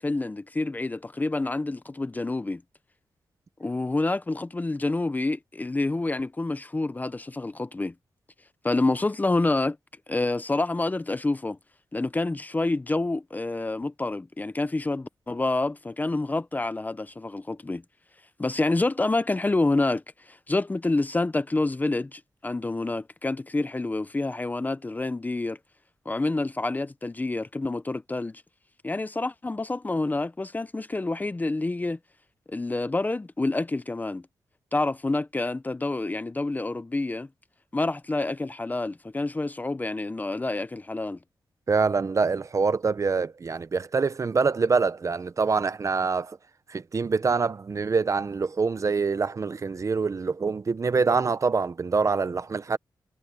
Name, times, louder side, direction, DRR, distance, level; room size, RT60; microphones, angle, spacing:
voice 1, 0.0-2.6 3.6-7.9 8.6-9.8 10.1-11.6 11.9-17.8 18.4-25.6 26.1-28.4 28.8-32.0 32.5-34.2 34.7-37.3 37.7-41.2, left 2 dB, 20° left, 0.7 m, -28 dB
voice 2, 41.7-46.4 46.7-52.8, right 4 dB, 40° right, 0.8 m, -25 dB
wide cardioid pair, 100°, 8 cm